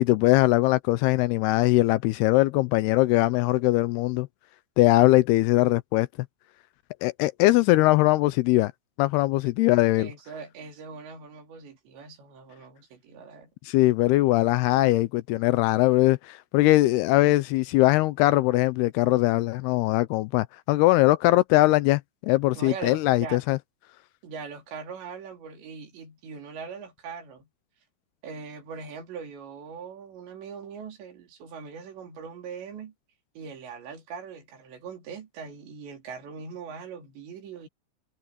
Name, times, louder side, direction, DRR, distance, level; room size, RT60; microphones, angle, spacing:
voice 1, 0.0-4.3 4.8-6.1 7.0-8.7 9.0-10.1 13.7-23.6, left 18 dB, 85° left, 2.4 m, -21 dB
voice 2, 10.0-13.5 22.5-23.4 24.2-27.5 28.2-32.9 33.4-37.7, right 5 dB, 85° right, 5.7 m, -41 dB
omnidirectional pair, 4.9 m